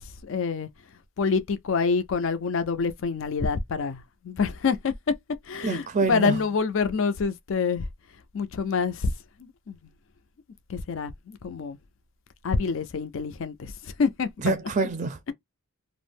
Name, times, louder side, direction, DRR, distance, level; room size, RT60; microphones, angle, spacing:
voice 1, 0.2-0.7 1.2-4.9 5.5-7.9 8.3-9.1 9.4-9.8 10.7-11.8 12.4-14.5, left 5 dB, 60° left, 0.4 m, -27 dB
voice 2, 5.6-6.4 14.4-15.3, right 4 dB, 35° right, 0.4 m, -26 dB
2.4 x 2.0 x 3.3 m
head